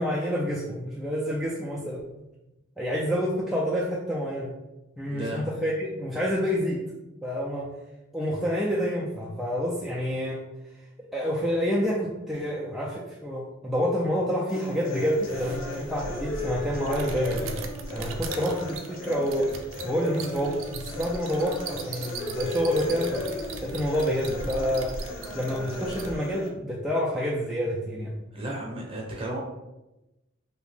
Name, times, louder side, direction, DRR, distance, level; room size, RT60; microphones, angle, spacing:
voice 1, 0.0-2.0 2.8-4.5 5.0-6.8 7.2-7.7 8.1-10.4 11.1-17.7 17.9-19.5 19.8-23.3 23.6-25.0 25.3-28.1, equal, ahead, -6 dB, 0.3 m, -28 dB
voice 2, 5.1-5.4 28.3-29.4, right 1 dB, 30° right, -2 dB, 0.8 m, -33 dB
sound 1, 14.5-26.5, left 2 dB, 80° left, 0.6 m, -36 dB
sound 2, 15.1-26.2, right 3 dB, 75° right, 0.4 m, -39 dB
2.7 x 2.4 x 3.4 m, 0.97 s
head